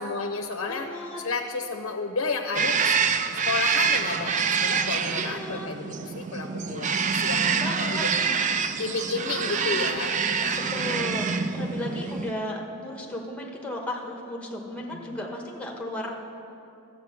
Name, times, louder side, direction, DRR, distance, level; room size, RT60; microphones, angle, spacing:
voice 1, 0.0-0.9 1.2-3.0 3.3-8.3 8.8-10.7 11.7-11.9 14.9-15.2, left 4 dB, 70° left, 4 dB, 0.6 m, -32 dB
voice 2, 0.7-1.2 5.2-5.7 7.6-8.0 9.3-9.8 10.7-16.1, left 1 dB, 5° left, 0 dB, 1.1 m, -35 dB
sound 1, 2.5-12.3, right 6 dB, 35° right, 0.4 m, -26 dB
12.0 x 8.1 x 5.8 m, 2.8 s
head